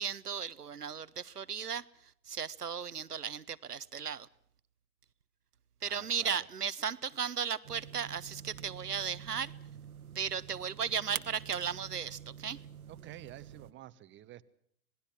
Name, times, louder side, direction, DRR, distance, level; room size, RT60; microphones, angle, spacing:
voice 1, 0.0-4.3 5.8-9.5 10.1-12.6, right 7 dB, 85° right, 18 dB, 0.9 m, -36 dB
voice 2, 5.8-6.5 12.9-14.4, right 13 dB, 25° right, 13 dB, 1.1 m, -50 dB
sound 1, 7.6-13.7, right 9 dB, 70° right, 1.3 m, -47 dB
27.0 x 19.5 x 6.0 m, 0.66 s
figure-of-eight pair, 95°, 45 cm